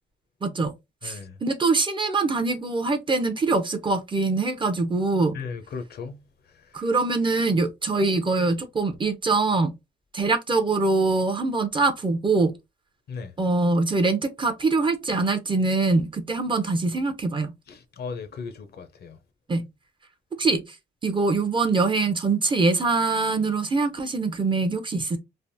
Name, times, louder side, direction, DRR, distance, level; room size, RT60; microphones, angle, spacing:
voice 1, 0.4-0.7 1.0-5.4 6.7-9.7 10.1-12.5 13.4-17.5 19.5-19.6 20.4-20.6 21.0-25.2, right 3 dB, 25° right, 0.5 m, -23 dB
voice 2, 1.0-1.4 5.3-6.2 13.1-13.3 17.7-19.2, left 5 dB, 55° left, 0.6 m, -36 dB
3.3 x 2.0 x 2.6 m
cardioid pair, 90°, 20 cm